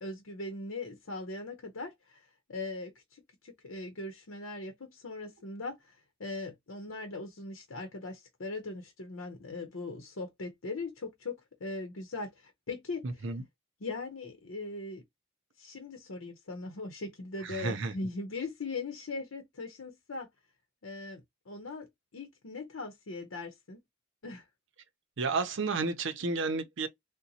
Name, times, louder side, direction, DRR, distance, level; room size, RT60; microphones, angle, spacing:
voice 1, 0.0-13.3 13.8-15.0 15.6-20.3 20.8-23.8 24.2-24.4, left 3 dB, 90° left, 0.8 m, -40 dB
voice 2, 13.0-13.4 17.4-17.9 25.2-26.9, right 3 dB, 65° right, 0.6 m, -32 dB
3.9 x 2.1 x 2.7 m
head